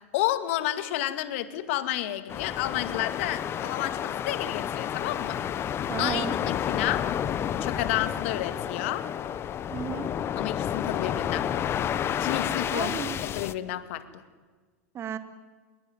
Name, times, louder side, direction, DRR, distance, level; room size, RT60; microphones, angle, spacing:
voice 1, 0.1-5.4 6.0-7.0 7.6-9.1 10.4-11.8 12.2-12.9 13.2-14.2, left 14 dB, 65° left, 12 dB, 2.1 m, -31 dB
sound 1, 2.3-13.5, left 9 dB, 35° left, 1.3 m, -30 dB
voice 2, 5.9-6.4 9.7-10.1 12.7-13.2 14.9-15.2, right 8 dB, 35° right, 10 dB, 2.7 m, -33 dB
25.0 x 22.0 x 9.6 m, 1.4 s
hypercardioid pair, 95°, 8 cm